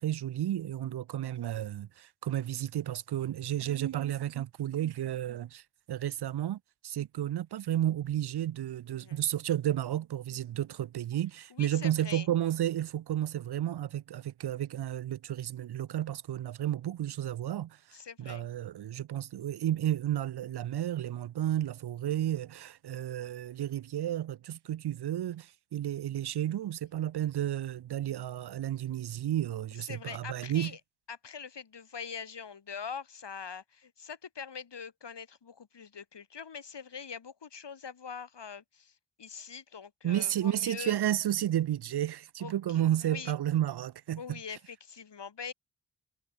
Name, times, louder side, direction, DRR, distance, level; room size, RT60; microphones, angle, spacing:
voice 1, 0.0-5.6 5.9-30.7 40.0-44.4, right 12 dB, 65° right, 0.6 m, -32 dB
voice 2, 8.9-9.2 11.5-12.3 17.9-18.5 29.8-30.8 31.1-41.0 42.4-43.3 44.2-45.5, left 6 dB, 75° left, 6.3 m, -43 dB
cardioid pair, 70°, 42 cm